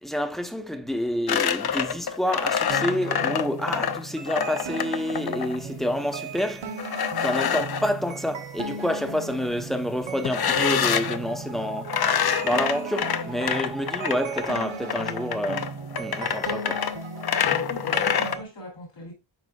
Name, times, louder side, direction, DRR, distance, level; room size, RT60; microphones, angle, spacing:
voice 1, 0.0-6.8 7.2-12.0 12.4-16.9, equal, ahead, 0.9 m, -28 dB
sound 1, 1.3-5.6 6.8-7.9 10.2-11.2 11.8-18.4, left 8 dB, 55° left, 0.6 m, -26 dB
sound 2, 2.7-18.4, right 4 dB, 85° right, 1.0 m, -36 dB
voice 2, 17.5-19.1, left 1 dB, 80° left, 3.0 m, -39 dB
10.5 x 4.0 x 2.4 m
wide cardioid pair, 75°, 45 cm